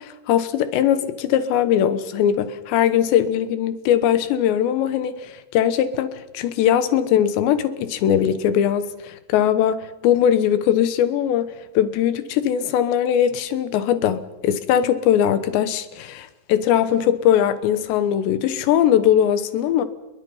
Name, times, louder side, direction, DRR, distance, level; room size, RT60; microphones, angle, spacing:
voice 1, 0.0-11.5 11.7-19.8, left 10 dB, 70° left, 3.0 m, -20 dB
27.5 x 22.5 x 5.6 m
omnidirectional pair, 5.8 m